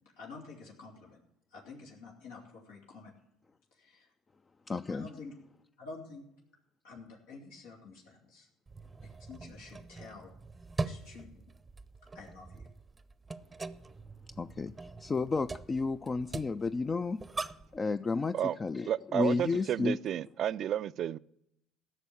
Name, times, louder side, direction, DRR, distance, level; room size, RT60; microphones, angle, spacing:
voice 1, 0.2-1.2 1.5-3.1 3.7-4.1 4.9-5.3 5.8-6.2 6.8-8.5 9.2-10.3 10.8-11.4 12.1-12.7, left 4 dB, 90° left, 2.8 m, -49 dB
voice 2, 4.7-5.1 14.4-17.2 17.7-20.0, left 4 dB, 30° left, 0.4 m, -32 dB
sound 1, 8.7-17.8, right 3 dB, 20° right, 0.7 m, -42 dB
voice 3, 18.9-21.2, right 10 dB, 55° right, 0.4 m, -32 dB
14.0 x 6.3 x 8.4 m
supercardioid pair, 80°, 0 cm